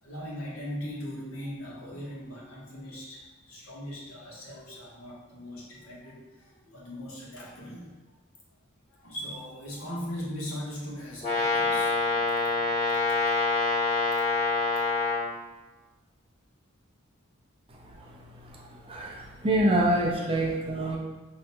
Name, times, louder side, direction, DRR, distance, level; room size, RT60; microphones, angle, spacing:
voice 1, 0.0-7.9 8.9-12.2 12.6-12.7, equal, 80° left, -5 dB, 1.1 m, -39 dB
Brass instrument, 11.2-15.3, left 3 dB, 35° left, 1.4 m, -26 dB
voice 2, 18.8-21.0, right 1 dB, 25° right, -2 dB, 0.5 m, -26 dB
5.2 x 2.9 x 2.2 m, 1.2 s
head